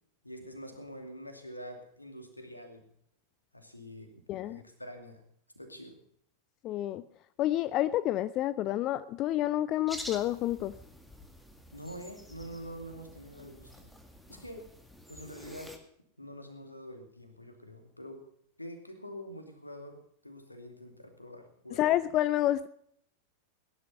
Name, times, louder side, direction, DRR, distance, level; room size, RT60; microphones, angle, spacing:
voice 1, 0.2-2.8 3.5-4.1 4.4-5.2 5.5-6.0 11.7-13.9 14.3-14.7 15.1-15.8 16.2-18.3 18.6-21.8, equal, 85° left, 5 dB, 2.6 m, -46 dB
voice 2, 4.3-4.6 6.6-7.0 7.4-10.8 21.7-22.7, left 13 dB, 35° left, 16 dB, 0.5 m, -29 dB
sound 1, 9.9-15.8, equal, 5° left, 1.9 m, -48 dB
17.0 x 11.0 x 5.6 m, 0.67 s
figure-of-eight pair, 90°, 0 cm